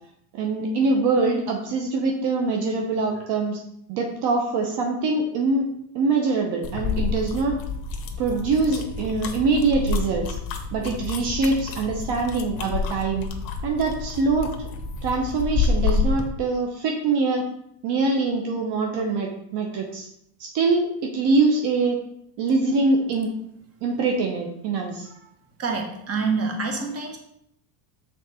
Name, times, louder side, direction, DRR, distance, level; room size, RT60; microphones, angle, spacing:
voice 1, 0.3-3.6 3.9-5.7 5.9-7.6 8.2-10.4 10.7-13.3 13.6-14.7 15.0-17.5 17.8-20.1 20.4-22.0 22.4-23.3 23.8-25.1, right 3 dB, 55° right, 2 dB, 1.0 m, -23 dB
sound 1, 6.6-16.3, left 5 dB, 45° left, 1.0 m, -28 dB
voice 2, 25.6-27.2, right 4 dB, 30° right, 3 dB, 1.2 m, -27 dB
6.2 x 4.0 x 4.2 m, 0.73 s
supercardioid pair, 125°, 50 cm